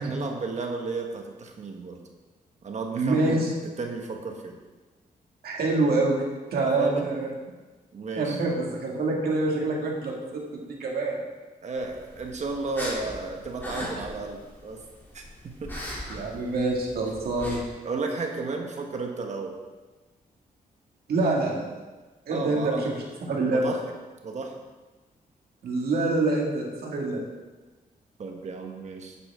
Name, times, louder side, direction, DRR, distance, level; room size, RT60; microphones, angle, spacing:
voice 1, 0.0-2.0 2.6-3.5 3.8-4.6 6.8-7.1 7.9-8.4 11.6-14.8 15.1-15.7 17.8-19.5 22.3-22.9 23.4-23.8 24.2-24.5 28.2-29.2, right 3 dB, 50° right, 2 dB, 1.3 m, -33 dB
voice 2, 2.9-3.5 5.4-6.2 6.5-7.3 8.2-11.2 16.1-17.6 21.1-21.8 22.3-22.9 23.3-23.7 25.6-27.2, right 2 dB, 90° right, -1 dB, 2.2 m, -26 dB
sound 1, 11.8-17.6, equal, 15° left, 3.0 m, -39 dB
11.5 x 8.6 x 3.7 m, 1.3 s
wide cardioid pair, 140°, 15 cm